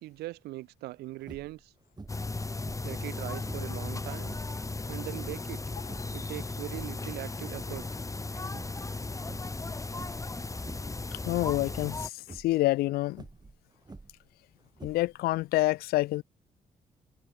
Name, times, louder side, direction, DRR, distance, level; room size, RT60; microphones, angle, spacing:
voice 1, 0.0-1.7 2.8-4.3 4.9-5.6 6.1-7.9, right 18 dB, 80° right, 3.2 m, -40 dB
sound 1, 1.2-1.6 2.0-2.3 2.6-3.8 4.2-4.6 5.1-6.2 6.6-7.1 7.5-8.3 8.5-8.9 9.2-9.6 10.0-10.3 10.6-11.0 11.5-11.8 12.2-12.6 13.1-14.3 14.7-15.3, right 3 dB, 25° right, 2.6 m, -48 dB
sound 2, 2.1-12.1, left 3 dB, 20° left, 1.0 m, -36 dB
voice 2, 11.3-13.2 14.8-16.2, left 18 dB, 70° left, 0.4 m, -27 dB
hypercardioid pair, 50°, 16 cm